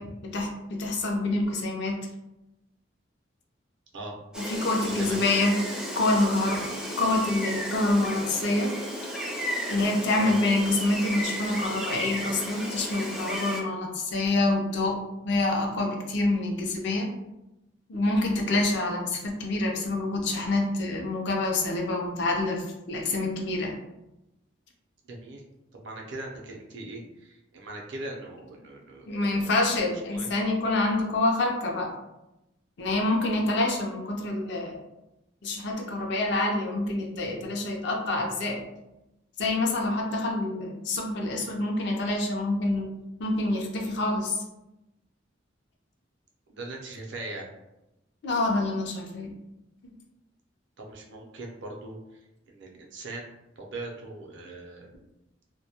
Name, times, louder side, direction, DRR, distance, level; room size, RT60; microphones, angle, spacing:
voice 1, 0.0-2.0 4.3-5.6 5.9-6.7 7.0-8.7 9.7-15.0 15.2-17.1 17.9-23.7 29.1-31.9 32.8-34.8 35.4-38.6 39.4-44.4 48.2-49.3, left 2 dB, 65° left, 1 dB, 0.5 m, -27 dB
Gull seagull, 4.3-13.6, equal, 5° right, 0.4 m, -34 dB
voice 2, 25.1-25.4 25.7-29.7 30.1-30.3 46.5-47.5 50.8-52.0 52.5-54.9, right 2 dB, 65° right, 0 dB, 0.5 m, -40 dB
2.1 x 2.1 x 2.7 m, 0.94 s
head